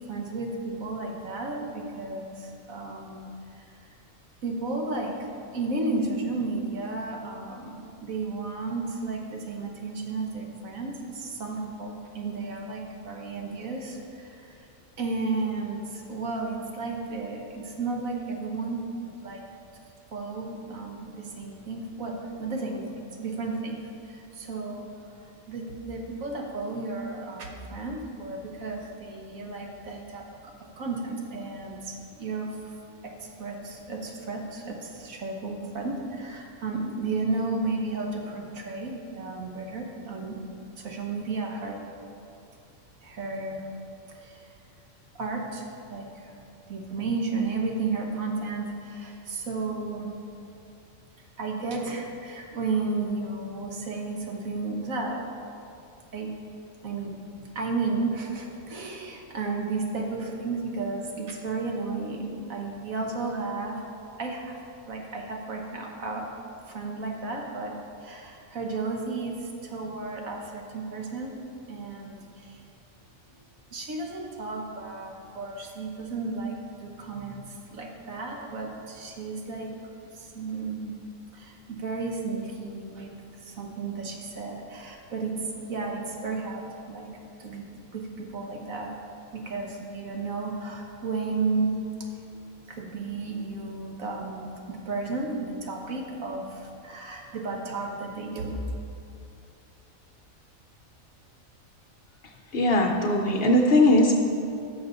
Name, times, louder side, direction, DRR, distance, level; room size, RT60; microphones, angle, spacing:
voice 1, 0.1-3.3 4.4-5.1 5.5-14.7 15.0-19.4 20.1-23.8 24.0-24.8 25.5-32.7 33.0-33.1 33.4-40.4 40.8-41.8 43.0-43.7 44.1-44.4 45.1-46.3 46.7-50.1 51.4-55.2 56.1-56.3 56.8-57.1 57.5-63.8 64.2-64.5 64.9-66.3 66.7-67.7 68.0-71.4 71.7-72.6 73.7-76.5 76.8-79.7 80.1-81.0 81.3-83.1 83.4-85.3 85.7-87.1 87.4-87.7 87.9-88.9 89.3-91.8 92.7-98.6, right 3 dB, 75° right, 1 dB, 1.5 m, -33 dB
voice 2, 102.5-104.2, left 1 dB, 55° left, 2 dB, 0.8 m, -20 dB
12.5 x 6.7 x 4.0 m, 2.6 s
omnidirectional pair, 1.4 m